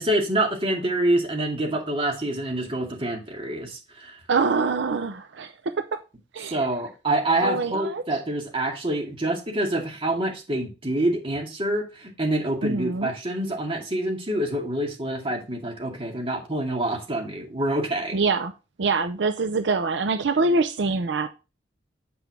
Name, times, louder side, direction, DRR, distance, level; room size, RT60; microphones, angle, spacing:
voice 1, 0.0-4.2 6.5-18.1, right 1 dB, 30° right, 2.3 m, -26 dB
voice 2, 4.3-6.0 6.3-6.7 7.4-8.0 12.6-13.1 18.1-18.5 18.8-21.3, right 4 dB, 80° right, 0.6 m, -24 dB
8.5 x 5.9 x 3.6 m
head